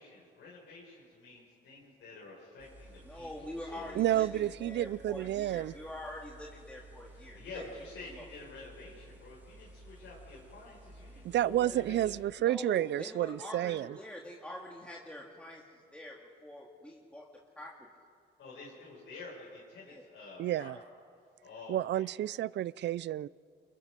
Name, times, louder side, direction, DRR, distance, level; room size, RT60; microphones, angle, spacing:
voice 1, 0.0-4.0 7.1-12.2 18.4-20.7 21.4-22.1, left 3 dB, 75° left, -5 dB, 5.9 m, -49 dB
sound 1, 2.6-12.2, right 1 dB, 10° right, 5.4 m, -54 dB
voice 2, 3.0-8.2 12.4-16.1 16.4-17.2 17.6-17.9 19.9-20.1 20.7-20.8, left 1 dB, 5° left, -3 dB, 2.6 m, -45 dB
voice 3, 4.0-5.7 11.2-14.0 20.4-20.8 21.7-23.3, right 13 dB, 60° right, 21 dB, 0.5 m, -30 dB
28.0 x 24.0 x 5.2 m, 2.2 s
cardioid pair, 90°, 20 cm